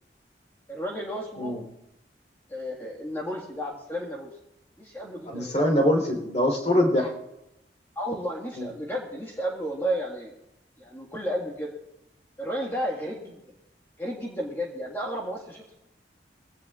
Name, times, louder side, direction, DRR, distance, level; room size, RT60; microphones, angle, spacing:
voice 1, 0.7-1.6 2.5-4.3 4.8-5.6 7.0-7.1 8.0-10.3 10.8-11.7 12.4-13.4 14.0-15.8, equal, 15° left, -3 dB, 1.7 m, -32 dB
voice 2, 5.3-7.1 8.6-8.7, left 1 dB, 40° left, 2 dB, 3.6 m, -23 dB
22.5 x 17.0 x 2.5 m, 0.87 s
head